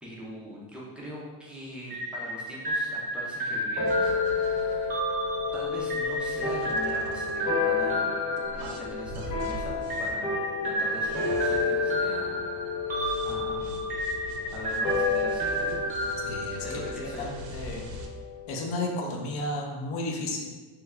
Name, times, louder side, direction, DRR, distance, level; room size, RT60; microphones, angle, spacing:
voice 1, 0.0-5.0 5.5-8.1 8.6-10.4 10.6-12.4 13.2-13.8 14.5-17.3, equal, 5° right, -6 dB, 0.3 m, -42 dB
sound 1, 1.9-9.3 9.9-17.1, right 1 dB, 20° right, 0.7 m, -32 dB
sound 2, 3.8-18.5, left 4 dB, 90° left, 1.2 m, -31 dB
sound 3, 3.9-7.9 8.4-18.1, right 1 dB, 55° right, 0.5 m, -44 dB
voice 2, 16.2-16.6 17.2-17.3 17.5-17.8 18.5-20.4, left 2 dB, 65° left, 1 dB, 0.7 m, -32 dB
3.1 x 2.2 x 3.5 m, 1.4 s
cardioid pair, 140°, 45 cm